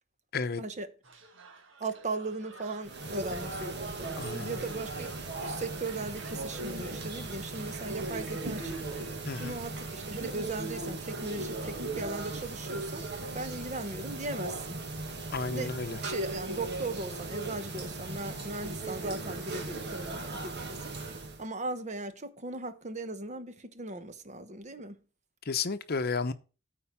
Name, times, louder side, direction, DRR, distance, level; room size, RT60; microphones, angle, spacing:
sound 1, 1.0-9.8, right 4 dB, 85° right, 1.5 m, -53 dB
voice 1, 1.8-5.1 5.4-13.0 13.3-14.8 15.5-20.9 21.4-25.0, right 2 dB, 40° right, 1.0 m, -38 dB
sound 2, 2.8-21.5, right 2 dB, 60° right, 1.8 m, -38 dB
voice 2, 4.2-4.5 9.2-9.6 15.3-16.0 25.5-26.3, left 4 dB, 55° left, 0.8 m, -32 dB
13.0 x 4.6 x 5.8 m
head